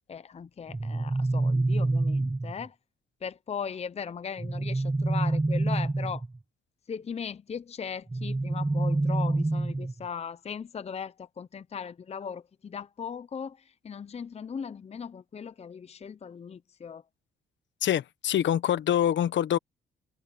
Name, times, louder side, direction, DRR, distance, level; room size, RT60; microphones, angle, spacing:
voice 1, 0.1-2.8 3.2-6.2 6.9-17.0, left 7 dB, 30° left, 0.7 m, -38 dB
sound 1, 0.7-2.7 4.4-6.4 8.1-10.1, right 2 dB, 15° right, 0.9 m, -27 dB
voice 2, 17.8-19.6, left 10 dB, 65° left, 1.2 m, -25 dB
cardioid pair, 90°, 20 cm